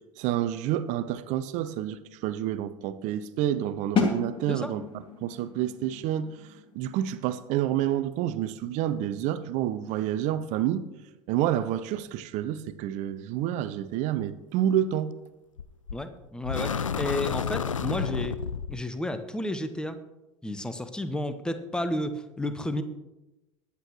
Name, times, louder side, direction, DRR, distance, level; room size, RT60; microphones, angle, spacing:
voice 1, 0.2-4.8 5.2-6.3 6.7-10.9 11.3-15.1, right 11 dB, 45° right, 0.7 m, -28 dB
sound 1, 4.0-9.7, left 4 dB, 35° left, 2.3 m, -33 dB
sound 2, 15.6-16.0 16.4-18.8, left 6 dB, 85° left, 0.5 m, -30 dB
voice 2, 15.9-18.4 18.7-20.0 20.4-22.8, left 1 dB, 5° left, 1.0 m, -32 dB
22.0 x 8.5 x 3.1 m
figure-of-eight pair, 75°, 16 cm